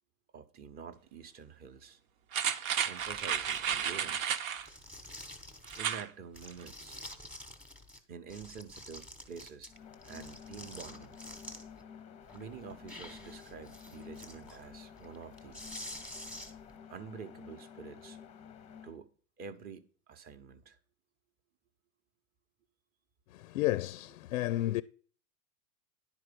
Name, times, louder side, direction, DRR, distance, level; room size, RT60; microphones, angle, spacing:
voice 1, 0.3-2.0 2.8-4.4 5.7-7.0 8.1-9.7 10.0-11.2 12.3-15.6 16.9-18.2 18.8-19.1 19.4-20.8, right 6 dB, 25° right, 0.8 m, -48 dB
sound 1, 2.3-4.7 5.7-6.1 6.5-6.6, right 8 dB, 80° right, 1.1 m, -32 dB
sound 2, 3.0-4.0 4.6-6.0 6.3-8.0 8.3-11.8 12.2-16.7, left 1 dB, 5° right, 1.0 m, -49 dB
sound 3, 9.7-19.0, left 7 dB, 15° left, 0.6 m, -51 dB
voice 2, 23.3-24.8, left 15 dB, 90° left, 0.5 m, -32 dB
10.5 x 4.5 x 6.7 m
supercardioid pair, 155°, 39 cm